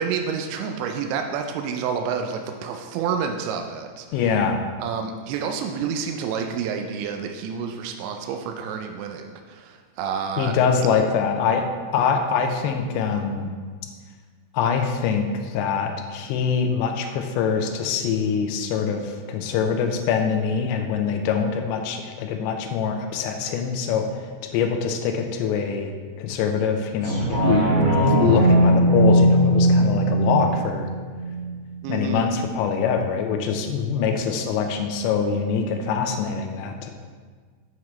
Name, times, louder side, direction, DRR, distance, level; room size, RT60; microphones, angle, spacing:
voice 1, 0.0-4.4 4.8-10.6 31.8-32.4, right 6 dB, 85° right, 4 dB, 2.6 m, -29 dB
voice 2, 4.1-4.6 10.4-11.7 11.9-13.5 14.5-24.1 24.5-27.7 28.1-30.9 31.9-36.9, left 6 dB, 80° left, 5 dB, 2.7 m, -24 dB
sound 1, 27.0-32.1 32.5-32.6, equal, 45° right, 1.6 m, -19 dB
8.0 x 7.2 x 3.2 m, 1.5 s
omnidirectional pair, 5.6 m